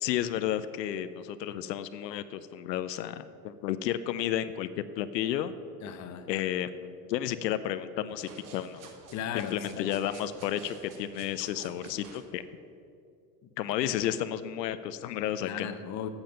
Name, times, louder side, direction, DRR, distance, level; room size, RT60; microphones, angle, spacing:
voice 1, 0.0-5.5 6.3-8.8 9.3-12.4 13.6-15.7, left 11 dB, 90° left, 12 dB, 0.6 m, -32 dB
voice 2, 5.8-6.3 9.1-9.9 13.4-13.9 15.4-16.1, left 8 dB, 35° left, 9 dB, 0.8 m, -37 dB
sound 1, 8.1-12.3, right 4 dB, 40° right, 1.5 m, -50 dB
7.9 x 7.2 x 6.7 m, 2.5 s
hypercardioid pair, 105°, 49 cm